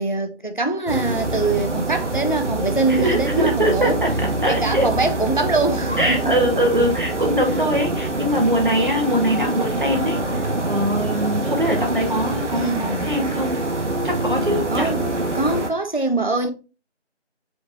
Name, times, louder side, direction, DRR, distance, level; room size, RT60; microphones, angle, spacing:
voice 1, 0.0-4.0 4.5-6.3 12.5-13.1 14.4-16.5, right 2 dB, 45° left, 0.5 m, -23 dB
sound 1, 0.9-15.7, right 2 dB, 85° right, 1.0 m, -25 dB
voice 2, 2.9-4.9 6.0-13.6 14.0-14.9, equal, 45° right, 1.2 m, -22 dB
5.0 x 3.2 x 2.5 m
figure-of-eight pair, 180°, 35 cm